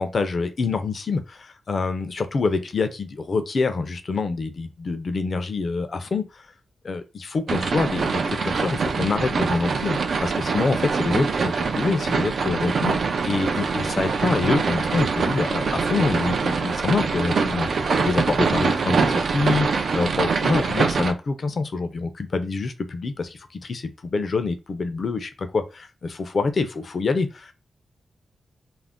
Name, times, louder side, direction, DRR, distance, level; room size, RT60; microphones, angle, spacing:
voice 1, 0.0-6.4 6.8-27.5, left 4 dB, 45° left, 0.4 m, -26 dB
sound 1, 7.5-21.1, right 5 dB, 65° right, 0.3 m, -24 dB
2.4 x 2.1 x 3.4 m
wide cardioid pair, 140°, 0 cm